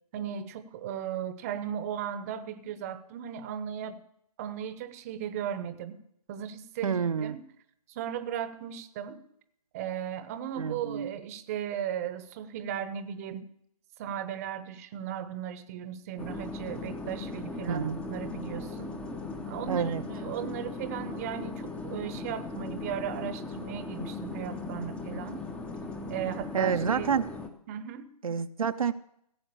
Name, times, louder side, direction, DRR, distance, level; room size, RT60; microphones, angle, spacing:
voice 1, 0.1-4.0 4.4-6.0 6.3-6.9 7.2-7.4 7.9-9.2 9.7-13.5 14.0-19.0 19.5-25.4 26.1-27.1 27.7-28.1, right 9 dB, 25° right, 12 dB, 0.8 m, -36 dB
voice 2, 6.8-7.4 10.6-11.1 17.7-18.0 19.7-20.0 26.5-27.3 28.2-28.9, right 7 dB, 60° right, 9 dB, 0.7 m, -28 dB
sound 1, 16.2-27.5, left 3 dB, 5° left, 0.7 m, -38 dB
16.5 x 7.9 x 6.8 m, 0.73 s
figure-of-eight pair, 145°, 20 cm